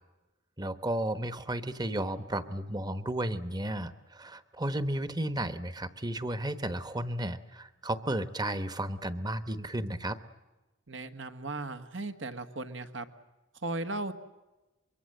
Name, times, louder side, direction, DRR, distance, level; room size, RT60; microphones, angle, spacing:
voice 1, 0.6-10.2, right 1 dB, 20° right, 12 dB, 1.2 m, -33 dB
voice 2, 10.9-13.0 13.6-14.1, right 2 dB, 70° right, 8 dB, 1.6 m, -36 dB
24.5 x 23.0 x 7.8 m, 1.1 s
head